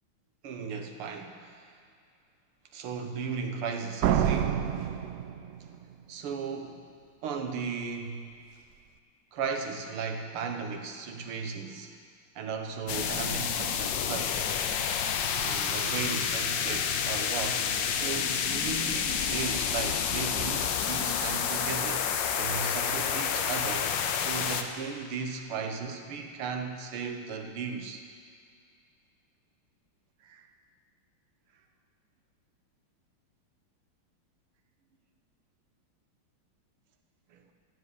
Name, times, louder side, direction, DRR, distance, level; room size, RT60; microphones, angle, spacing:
voice 1, 0.4-1.8 2.7-5.0 6.1-6.9 7.2-8.3 9.3-11.9 12.4-14.6 15.3-23.9 24.2-28.0 30.2-30.5 37.3-37.4, right 5 dB, 90° right, 5 dB, 2.0 m, -36 dB
Slam, 4.0-5.9, right 9 dB, 75° right, 0.9 m, -27 dB
sound 1, 12.9-24.6, left 7 dB, 65° left, 1.3 m, -29 dB
14.0 x 7.7 x 8.4 m, 2.2 s
omnidirectional pair, 2.3 m